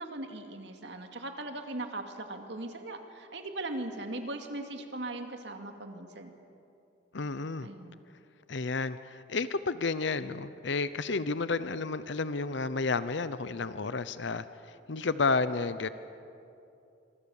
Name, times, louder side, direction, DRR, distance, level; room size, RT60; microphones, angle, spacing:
voice 1, 0.0-6.4 7.6-8.0, right 2 dB, 65° right, 5 dB, 2.3 m, -39 dB
voice 2, 7.1-7.7 8.5-14.4 14.9-15.9, left 4 dB, 70° left, 14 dB, 0.7 m, -31 dB
25.5 x 24.0 x 7.2 m, 2.7 s
head